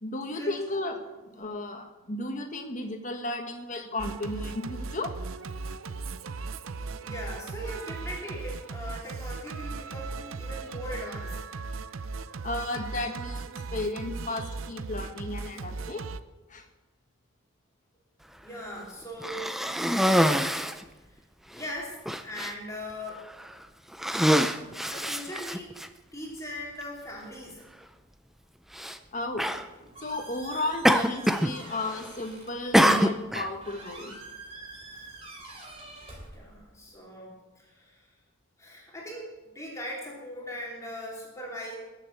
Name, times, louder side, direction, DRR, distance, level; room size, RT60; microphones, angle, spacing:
voice 1, 0.0-5.1 12.4-16.0 16.5-16.6 29.1-29.5 30.0-34.2, left 2 dB, 35° left, 5 dB, 1.6 m, -34 dB
Singing, 4.0-16.2, right 4 dB, 70° right, 0.6 m, -37 dB
voice 2, 7.0-11.3 18.4-19.5 21.5-22.0 22.2-23.2 24.9-25.7 26.1-27.6 34.9-35.1 36.3-38.0 38.6-41.8, left 1 dB, 15° left, -3 dB, 3.1 m, -39 dB
Cough, 19.2-20.8 21.6-21.7 22.1-22.5 23.3-23.5 23.9-25.9 26.8-26.9 28.7-29.0 29.4-29.7 30.9-31.5 31.8-32.2 32.7-33.5, equal, ahead, 0.5 m, -24 dB
Squeak, 29.5-36.9, right 2 dB, 30° right, 3.1 m, -47 dB
21.0 x 7.4 x 6.8 m, 1.1 s
head